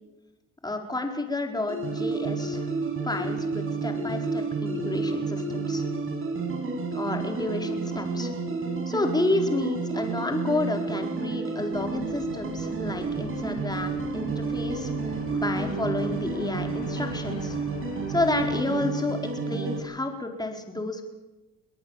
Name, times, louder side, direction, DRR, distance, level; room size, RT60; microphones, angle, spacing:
voice 1, 0.6-2.7 3.0-5.8 6.9-8.3 8.9-17.6 18.1-19.2 19.5-21.0, left 2 dB, 15° left, 4 dB, 4.6 m, -30 dB
sound 1, 1.7-19.8, right 4 dB, 45° right, 6.5 m, -30 dB
sound 2, 11.7-18.6, left 5 dB, 80° left, 6.9 m, -42 dB
23.5 x 18.5 x 7.3 m, 1.0 s
supercardioid pair, 85°, 30 cm